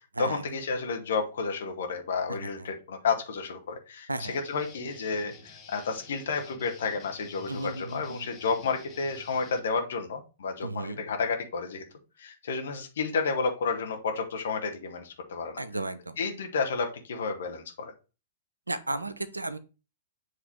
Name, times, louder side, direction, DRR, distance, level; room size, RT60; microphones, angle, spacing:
voice 1, 0.2-11.8 12.2-15.6 16.2-17.9, left 4 dB, 60° left, 3 dB, 1.3 m, -31 dB
Guitar, 4.2-9.6, left 4 dB, 25° left, 1.5 m, -50 dB
voice 2, 7.5-8.3 10.6-11.1 15.6-16.2 18.7-19.6, right 2 dB, 80° right, 12 dB, 0.6 m, -34 dB
7.8 x 3.2 x 4.4 m, 0.32 s
figure-of-eight pair, 105°, 0 cm